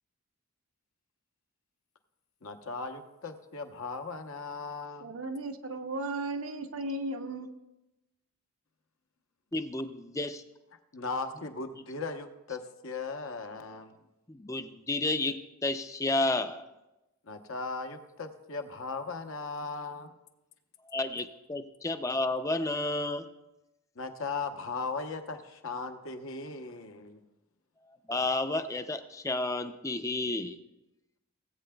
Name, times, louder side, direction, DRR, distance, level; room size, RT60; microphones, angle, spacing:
voice 1, 2.4-5.1 10.9-14.0 17.2-20.1 24.0-27.2, left 4 dB, 65° left, 6 dB, 0.8 m, -38 dB
voice 2, 5.0-7.5, right 2 dB, 70° right, 7 dB, 0.7 m, -35 dB
voice 3, 9.5-10.4 14.3-16.7 20.9-23.3 28.1-30.6, left 2 dB, 15° left, 9 dB, 0.4 m, -31 dB
18.5 x 8.4 x 2.3 m, 0.96 s
head